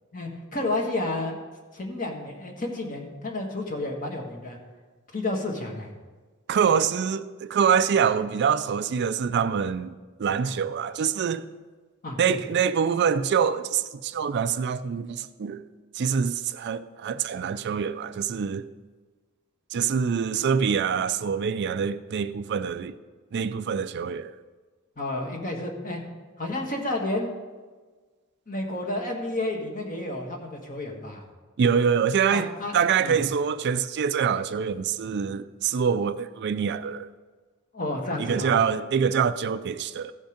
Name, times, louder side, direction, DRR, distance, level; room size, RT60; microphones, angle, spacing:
voice 1, 0.1-1.4 1.7-4.6 5.1-5.9 10.4-10.5 12.0-12.4 25.0-26.0 26.4-27.3 28.5-31.2 32.3-33.2 37.7-38.5, left 2 dB, 40° left, 1.5 m, -31 dB
voice 2, 6.5-9.9 10.2-11.4 12.2-15.6 15.9-18.7 19.7-22.9 23.3-24.3 31.6-37.1 38.2-40.1, right 7 dB, 50° right, 0.4 m, -25 dB
15.5 x 5.3 x 5.1 m
head